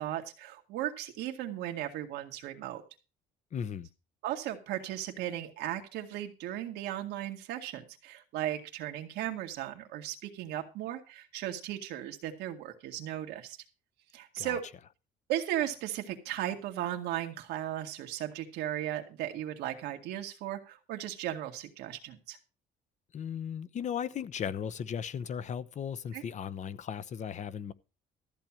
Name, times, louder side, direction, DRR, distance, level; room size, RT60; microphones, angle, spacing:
voice 1, 0.0-2.8 4.2-13.6 14.1-14.6 15.3-22.4 26.1-26.2, right 12 dB, 90° right, 2.1 m, -36 dB
voice 2, 3.5-3.9 14.4-14.6 23.1-27.7, left 8 dB, 45° left, 0.9 m, -36 dB
14.0 x 4.6 x 9.0 m
cardioid pair, 110°, 17 cm